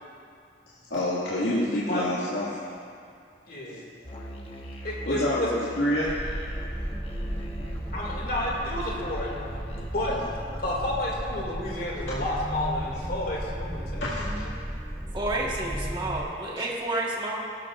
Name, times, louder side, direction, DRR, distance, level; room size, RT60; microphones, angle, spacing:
voice 1, 0.9-2.6 5.0-6.1 10.1-10.2 14.0-14.5, left 1 dB, 85° left, -9 dB, 2.1 m, -27 dB
voice 2, 3.5-3.8 4.8-5.5 7.9-9.3 9.9-10.2 10.6-14.0, left 1 dB, 55° left, -3 dB, 2.5 m, -30 dB
Musical instrument, 4.0-9.9, right 1 dB, 30° left, 1.2 m, -40 dB
sound 1, 6.1-16.2, equal, 5° right, 0.5 m, -35 dB
voice 3, 15.1-17.4, right 2 dB, 25° right, -4 dB, 1.5 m, -30 dB
17.5 x 13.5 x 2.5 m, 2.3 s
head